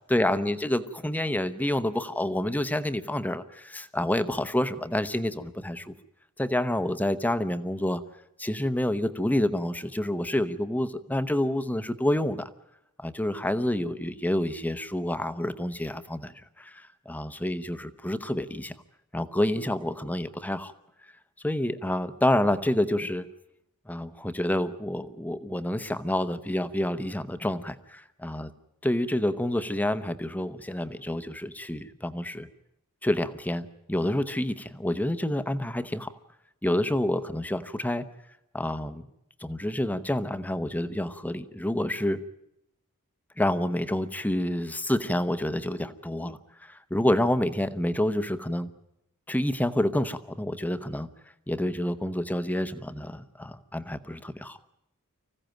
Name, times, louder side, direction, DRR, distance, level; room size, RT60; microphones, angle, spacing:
voice 1, 0.1-5.9 6.4-8.0 8.4-12.5 13.0-18.7 19.1-20.7 21.4-23.3 23.9-28.5 28.8-32.5 33.0-36.2 36.6-38.1 38.5-39.1 39.4-42.2 43.4-48.7 49.3-51.1 51.5-54.6, left 1 dB, 5° left, 11 dB, 0.9 m, -28 dB
25.0 x 15.5 x 9.1 m, 0.85 s
head